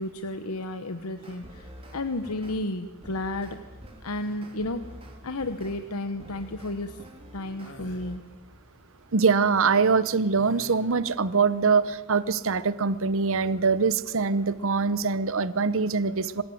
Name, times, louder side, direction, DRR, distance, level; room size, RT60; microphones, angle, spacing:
voice 1, 0.0-3.6 4.0-4.9 5.2-7.0 7.3-8.2, left 2 dB, 90° left, 9 dB, 1.1 m, -32 dB
sound 1, 1.2-2.6 3.0-8.2, equal, 25° right, 3.9 m, -47 dB
sound 2, 7.6-8.1 10.4-11.0, left 2 dB, 60° left, 2.5 m, -49 dB
voice 2, 9.1-16.4, right 5 dB, 65° right, 15 dB, 0.9 m, -23 dB
26.0 x 16.0 x 9.4 m, 1.2 s
head